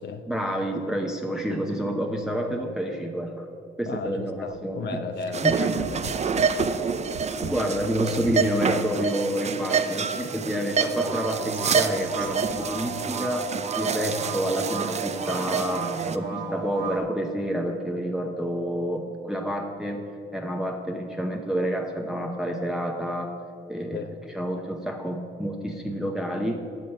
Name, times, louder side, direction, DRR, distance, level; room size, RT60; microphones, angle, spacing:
voice 1, 0.3-3.5 3.8-5.0 5.4-5.9 7.4-15.9 16.1-20.0 20.3-23.3 23.7-24.1 24.3-26.6, equal, 5° right, 2 dB, 0.8 m, -29 dB
voice 2, 3.9-5.5 5.8-6.5 23.9-24.1, left 4 dB, 60° left, 7 dB, 0.7 m, -35 dB
sound 1, 4.5-4.7 5.2-10.6 11.1-12.6, right 6 dB, 75° right, 0.7 m, -43 dB
sound 2, 5.3-16.2, right 5 dB, 35° right, 0.5 m, -27 dB
sound 3, 10.9-17.0, right 5 dB, 55° right, 1.8 m, -34 dB
9.0 x 7.8 x 5.4 m, 2.7 s
cardioid pair, 90°, 20 cm